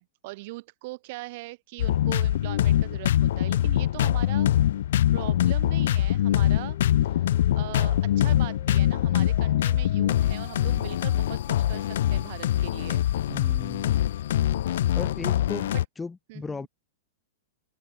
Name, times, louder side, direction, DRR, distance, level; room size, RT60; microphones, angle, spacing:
voice 1, 0.0-4.5 5.1-6.8 7.1-7.3 7.5-13.0 15.7-15.8 16.3-16.7, right 22 dB, 40° right, 7.1 m, -41 dB
sound 1, 1.8-15.8, left 12 dB, 65° left, 0.5 m, -23 dB
sound 2, 6.3-12.3, left 23 dB, 40° left, 2.5 m, -48 dB
voice 2, 13.3-14.0 14.9-15.7 16.0-16.7, left 4 dB, 5° left, 2.6 m, -36 dB
supercardioid pair, 170°, 0 cm